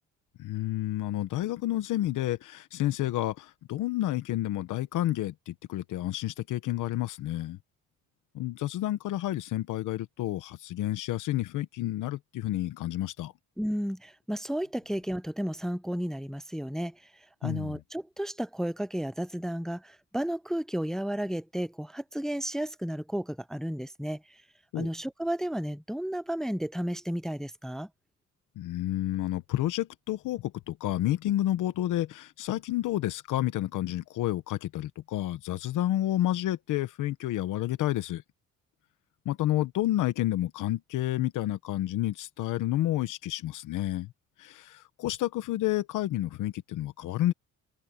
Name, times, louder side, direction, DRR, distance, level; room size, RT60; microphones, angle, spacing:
voice 1, 0.4-7.6 8.3-13.3 17.4-17.8 24.7-24.9 28.6-38.2 39.2-44.1 44.4-47.3, left 14 dB, 85° left, 1.2 m, -30 dB
voice 2, 13.6-17.0 17.4-24.2 24.8-27.9, equal, ahead, 0.4 m, -33 dB
open air
cardioid pair, 90°, 30 cm